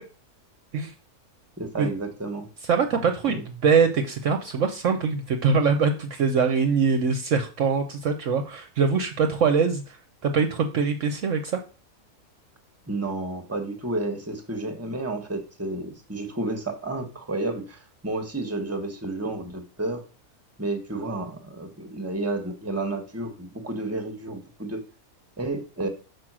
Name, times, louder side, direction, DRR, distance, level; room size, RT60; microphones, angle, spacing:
voice 1, 1.6-2.5 3.3-3.4 12.9-20.0 20.6-24.8 25.4-25.9, right 2 dB, 10° right, 6 dB, 1.1 m, -31 dB
voice 2, 2.6-11.6, right 5 dB, 60° right, 6 dB, 1.0 m, -23 dB
6.1 x 4.9 x 6.0 m, 0.36 s
omnidirectional pair, 1.6 m